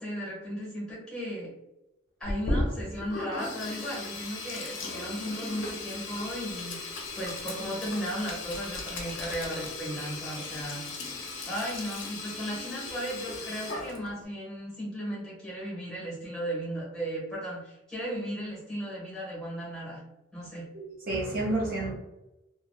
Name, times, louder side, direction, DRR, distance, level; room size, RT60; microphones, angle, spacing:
voice 1, 0.0-1.5 2.2-6.8 7.2-10.8 11.5-20.0 20.3-20.7, equal, 5° left, -6 dB, 1.2 m, -36 dB
Sink (filling or washing), 2.2-14.3, left 2 dB, 80° left, 0.5 m, -36 dB
voice 2, 20.7-21.9, right 2 dB, 50° right, -4 dB, 0.5 m, -30 dB
2.8 x 2.3 x 2.2 m, 0.93 s
head